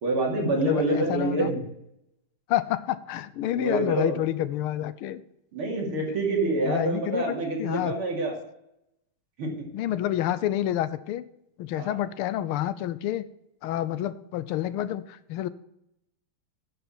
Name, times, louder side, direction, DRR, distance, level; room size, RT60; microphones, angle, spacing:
voice 1, 0.0-1.6 3.5-4.1 5.5-8.3 9.4-9.6 11.7-12.0, right 2 dB, 85° right, -1 dB, 3.5 m, -27 dB
voice 2, 0.5-1.5 2.5-5.2 6.6-7.9 9.7-11.2 11.6-13.2 13.6-15.5, left 12 dB, 90° left, 15 dB, 1.6 m, -28 dB
10.0 x 7.0 x 6.1 m, 0.81 s
omnidirectional pair, 2.3 m